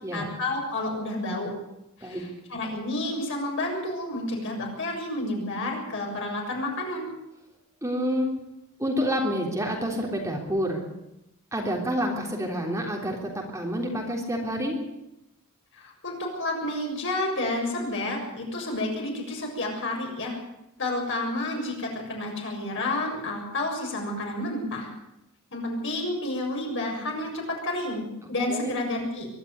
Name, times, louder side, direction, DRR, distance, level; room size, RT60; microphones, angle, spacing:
voice 1, 0.1-1.5 2.0-7.1 15.8-20.4 20.8-24.9 25.5-29.3, left 1 dB, 60° left, 0 dB, 6.9 m, -30 dB
voice 2, 7.8-8.3 8.8-10.8 11.5-14.8 28.5-28.7, equal, 15° right, 0 dB, 3.4 m, -28 dB
23.0 x 12.0 x 9.5 m, 0.87 s
head